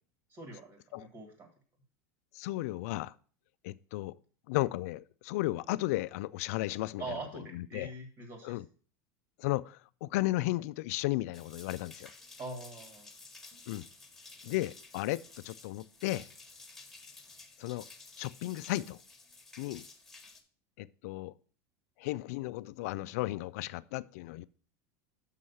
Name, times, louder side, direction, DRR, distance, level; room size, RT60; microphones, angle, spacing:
voice 1, 0.3-1.5 7.0-8.6 12.4-13.1, right 3 dB, 35° right, 1.7 m, -43 dB
voice 2, 2.3-3.1 3.6-4.2 4.5-7.2 7.5-7.9 8.4-8.7 9.4-12.1 13.7-13.9 14.4-16.3 17.6-17.8 18.2-19.0 19.6-19.8 20.8-21.3 22.0-24.5, left 18 dB, 70° left, 0.3 m, -34 dB
sound 1, 11.3-20.4, left 3 dB, 5° left, 1.3 m, -53 dB
6.4 x 5.5 x 5.5 m
supercardioid pair, 140°, 9 cm